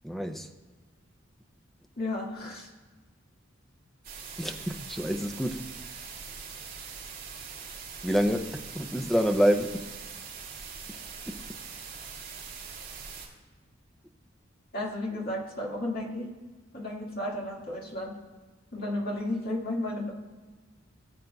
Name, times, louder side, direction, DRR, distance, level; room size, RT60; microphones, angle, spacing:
voice 1, 0.0-0.5 4.4-5.6 8.0-9.9 11.3-11.4, equal, ahead, 5 dB, 0.5 m, -27 dB
voice 2, 2.0-2.7 14.7-16.3 16.7-18.2 18.7-20.1, left 1 dB, 50° left, -2 dB, 1.9 m, -33 dB
sound 1, 4.0-13.3, right 5 dB, 45° right, 3.0 m, -42 dB
17.5 x 7.8 x 2.3 m, 1.3 s
head